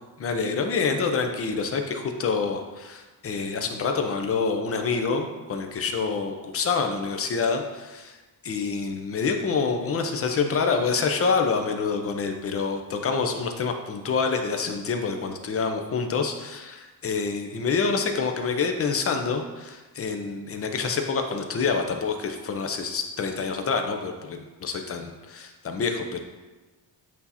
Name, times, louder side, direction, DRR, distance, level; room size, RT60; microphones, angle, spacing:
voice 1, 0.2-8.2 8.4-26.2, left 5 dB, 35° left, 5 dB, 0.7 m, -27 dB
8.4 x 2.9 x 4.1 m, 1.2 s
cardioid pair, 110°, 40 cm